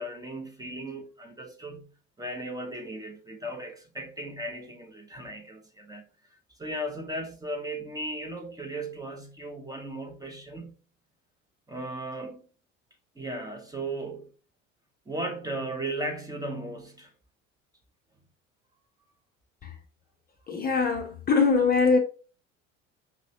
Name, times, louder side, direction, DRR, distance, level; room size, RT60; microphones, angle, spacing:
voice 1, 0.0-1.9 2.2-6.1 6.6-10.7 11.7-12.4 13.2-14.3 15.1-17.1, right 1 dB, 10° right, 0.7 m, -36 dB
voice 2, 20.5-22.0, left 4 dB, 25° left, 0.7 m, -22 dB
5.4 x 2.9 x 2.8 m
figure-of-eight pair, 65°, 39 cm